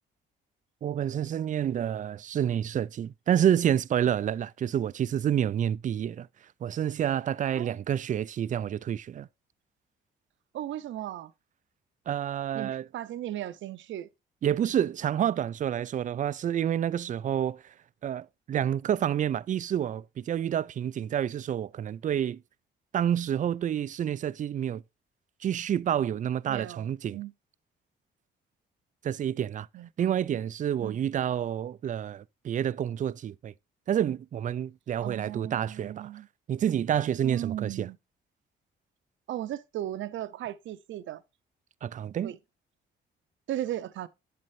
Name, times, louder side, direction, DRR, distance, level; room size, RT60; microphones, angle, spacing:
voice 1, 0.8-6.3 6.6-9.3 12.1-12.8 14.4-17.6 18.0-22.4 22.9-24.8 25.4-27.2 29.0-29.7 30.0-33.5 33.9-36.1 36.5-37.9 41.8-42.3, right 10 dB, 40° right, 0.4 m, -28 dB
voice 2, 10.5-11.3 12.5-14.1 26.5-27.3 29.7-30.1 30.8-31.1 35.0-36.3 37.2-38.0 39.3-41.2 42.2-42.4 43.5-44.1, right 13 dB, 75° right, 0.7 m, -36 dB
8.3 x 7.7 x 2.6 m
cardioid pair, 90°, 20 cm